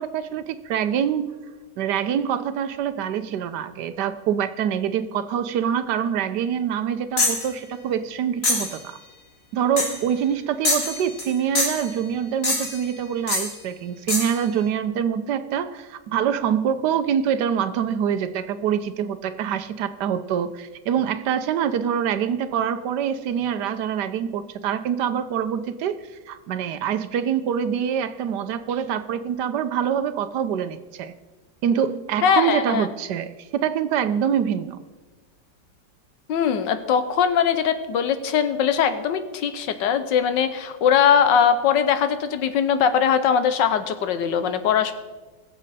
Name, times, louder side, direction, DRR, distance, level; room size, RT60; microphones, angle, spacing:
voice 1, 0.0-1.4 1.8-9.0 9.5-31.1 31.6-34.8, right 8 dB, 75° right, 12 dB, 1.3 m, -25 dB
sound 1, 7.2-7.5 8.4-8.8 9.8-10.0 10.6-11.3 11.6-11.9 12.4-12.8 13.3-13.5 14.1-14.4, left 2 dB, 50° left, 2.6 m, -24 dB
voice 2, 32.2-32.9 36.3-44.9, left 7 dB, 90° left, 10 dB, 1.5 m, -21 dB
21.0 x 7.4 x 4.2 m, 1.3 s
omnidirectional pair, 1.9 m